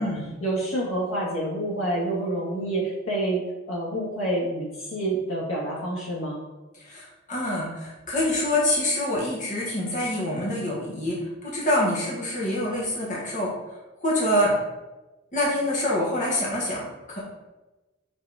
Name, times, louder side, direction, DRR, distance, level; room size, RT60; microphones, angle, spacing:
voice 1, 0.4-3.4 3.7-6.4, right 1 dB, 80° left, -4 dB, 1.9 m, -28 dB
voice 2, 6.7-13.5 14.0-14.5 15.3-17.2, left 1 dB, 40° left, -5 dB, 1.5 m, -26 dB
5.2 x 4.3 x 4.8 m, 1.1 s
head